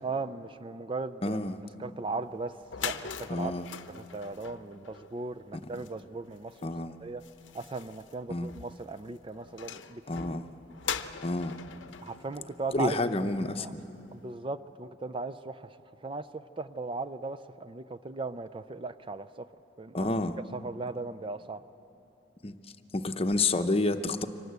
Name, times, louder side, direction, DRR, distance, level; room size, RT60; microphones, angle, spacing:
voice 1, 0.0-1.4 1.8-2.5 2.8-3.5 3.9-6.7 7.0-7.2 7.5-10.4 12.0-13.0 13.6-13.7 14.1-15.7 16.0-19.5 19.8-20.1 20.5-21.6, right 3 dB, 30° right, 12 dB, 0.4 m, -37 dB
voice 2, 1.2-1.6 3.3-3.7 6.6-7.0 8.3-8.5 10.1-10.5 11.2-11.6 12.7-13.8 19.9-20.4 22.4-22.5 22.9-24.3, left 2 dB, 30° left, 9 dB, 0.8 m, -29 dB
sound 1, 2.3-2.4 2.6-13.4, left 7 dB, 90° left, 0.8 m, -42 dB
25.0 x 18.5 x 8.1 m, 3.0 s
head